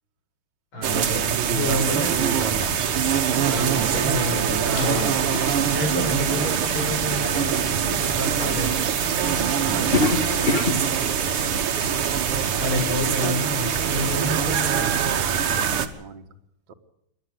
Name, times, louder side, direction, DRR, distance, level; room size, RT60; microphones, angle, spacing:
voice 1, 0.7-2.1 3.5-5.1 5.7-8.8 12.6-14.9, left 1 dB, 75° left, 3 dB, 6.0 m, -29 dB
sound 1, 0.8-15.9, right 8 dB, 85° right, 2.2 m, -23 dB
voice 2, 1.4-2.7 9.5-11.8 15.5-16.2 16.7-16.8, right 4 dB, 55° right, 5 dB, 2.0 m, -34 dB
sound 2, 1.8-12.8, left 3 dB, 30° left, 1.6 m, -32 dB
28.0 x 12.0 x 7.9 m, 0.81 s
omnidirectional pair, 2.4 m